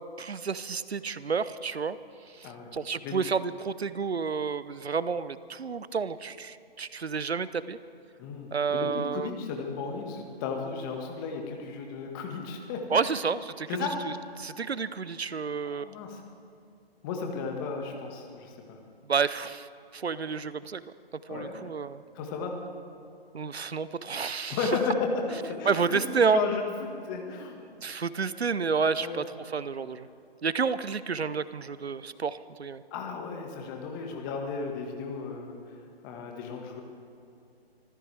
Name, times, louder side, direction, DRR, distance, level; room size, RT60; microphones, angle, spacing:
voice 1, 0.0-2.0 2.3-7.8 8.5-9.3 12.9-13.9 14.4-15.9 19.1-20.8 21.3-22.0 23.3-24.7 25.7-26.4 27.8-30.1 30.4-32.8, right 5 dB, 85° right, 16 dB, 0.8 m, -30 dB
voice 2, 2.4-2.7 3.0-3.2 8.2-13.1 13.7-14.0 14.3-14.4 15.6-16.2 17.0-18.8 21.3-21.7 22.2-22.5 24.5-26.6 27.0-27.6 28.2-28.3 29.0-29.2 32.9-35.6 36.0-36.8, left 5 dB, 20° left, 2 dB, 1.8 m, -34 dB
25.0 x 14.5 x 3.5 m, 2.6 s
figure-of-eight pair, 145°, 31 cm